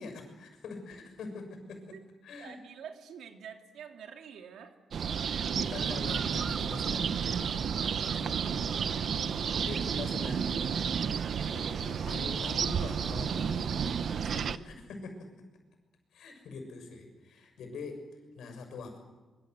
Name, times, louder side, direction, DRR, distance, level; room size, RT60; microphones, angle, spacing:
voice 1, 0.0-2.0 2.2-2.6 5.4-15.3 16.1-18.1 18.4-19.0, left 4 dB, 85° left, 6 dB, 6.6 m, -44 dB
voice 2, 2.4-4.8, right 8 dB, 90° right, 5 dB, 2.6 m, -47 dB
sound 1, 4.9-14.6, right 7 dB, 50° right, 0.7 m, -31 dB
24.5 x 23.5 x 8.0 m, 1.2 s
wide cardioid pair, 155°, 0 cm